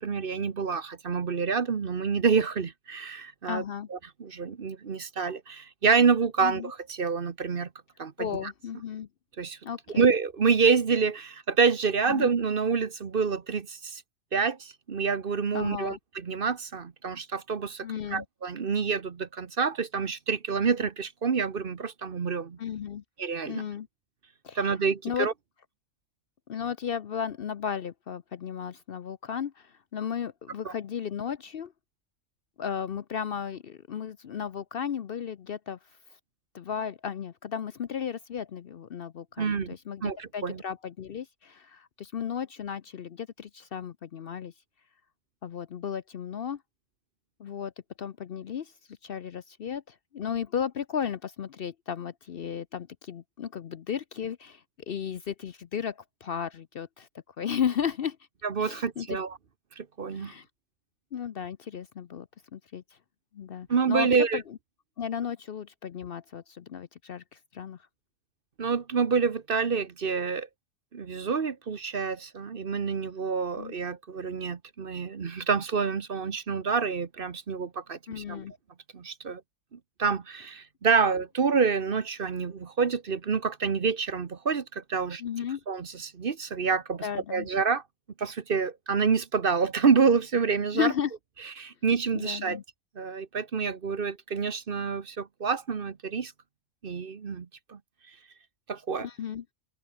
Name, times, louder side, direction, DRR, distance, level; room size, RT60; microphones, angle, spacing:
voice 1, 0.0-3.6 3.9-7.7 8.0-8.5 9.4-9.6 10.0-14.0 14.3-17.9 18.1-22.6 23.2-23.6 24.5-25.3 30.6-30.7 39.4-39.7 40.0-40.6 58.4-59.4 59.8-60.3 63.7-64.4 68.6-70.5 70.9-78.4 78.9-79.4 79.7-85.2 85.7-87.8 88.2-90.9 91.6-92.6 93.0-96.3 96.8-97.8 98.7-99.1, right 5 dB, 45° right, 1.2 m, -27 dB
voice 2, 3.5-3.9 6.4-6.7 8.2-9.1 9.6-10.0 12.1-12.3 15.5-16.0 17.8-18.2 22.6-23.0 23.5-23.9 24.4-24.7 25.0-25.3 26.5-31.7 32.6-35.8 36.5-44.5 45.4-46.6 47.4-47.7 48.0-48.7 49.0-57.1 57.4-58.2 58.6-59.2 60.1-60.5 61.1-62.8 63.3-64.6 65.0-67.8 73.6-73.7 78.1-78.5 85.2-85.6 87.0-87.5 90.7-91.1 92.1-92.6 99.0-99.4, left 8 dB, 55° left, 0.8 m, -34 dB
open air
omnidirectional pair, 1.3 m